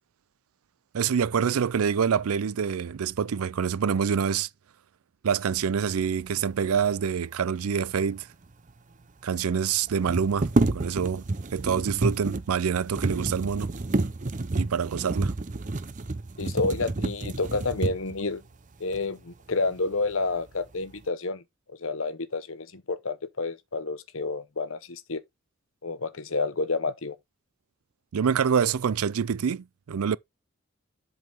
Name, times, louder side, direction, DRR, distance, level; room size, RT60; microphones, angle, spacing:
voice 1, 0.9-4.5 5.2-8.3 9.2-11.3 11.5-13.7 14.5-15.3 28.1-30.2, right 7 dB, 90° right, 0.4 m, -26 dB
sound 1, 8.4-8.5 8.7-8.8 9.9-18.2 18.9-19.0 19.5-20.1 20.5-21.0, right 2 dB, 35° right, 0.6 m, -29 dB
voice 2, 16.4-18.4 18.8-21.4 21.8-25.2 25.8-27.1, left 3 dB, 70° left, 1.0 m, -29 dB
7.6 x 4.9 x 3.8 m
head